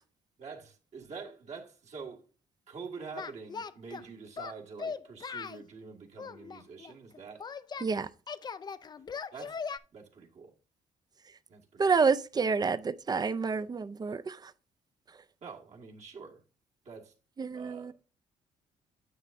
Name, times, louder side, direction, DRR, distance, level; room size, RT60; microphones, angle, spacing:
voice 1, 0.4-2.2 2.7-7.4 9.3-9.6 9.9-10.5 11.5-12.0 15.4-16.4 16.9-17.1 17.5-17.9, right 5 dB, 60° right, 1.8 m, -46 dB
Singing, 3.1-4.0 4.4-5.6 6.2-7.9 8.3-9.8, left 5 dB, 30° left, 0.4 m, -39 dB
voice 2, 11.8-14.5 17.4-17.9, right 5 dB, 30° right, 0.5 m, -28 dB
9.4 x 7.3 x 2.6 m
cardioid pair, 75°, 13 cm